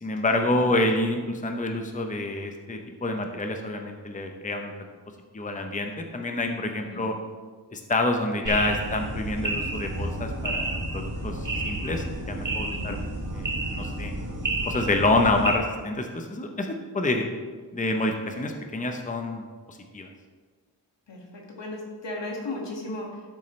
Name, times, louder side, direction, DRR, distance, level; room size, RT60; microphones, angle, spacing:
voice 1, 0.0-4.7 5.3-7.1 7.7-13.0 13.3-14.1 14.6-17.2 17.7-19.4 19.7-20.1, left 2 dB, 20° left, 4 dB, 0.8 m, -27 dB
sound 1, 8.5-15.5, right 2 dB, 45° right, 1.9 m, -31 dB
voice 2, 21.6-23.3, left 2 dB, 80° left, -1 dB, 2.2 m, -35 dB
12.0 x 7.3 x 3.3 m, 1.4 s
wide cardioid pair, 95°, 43 cm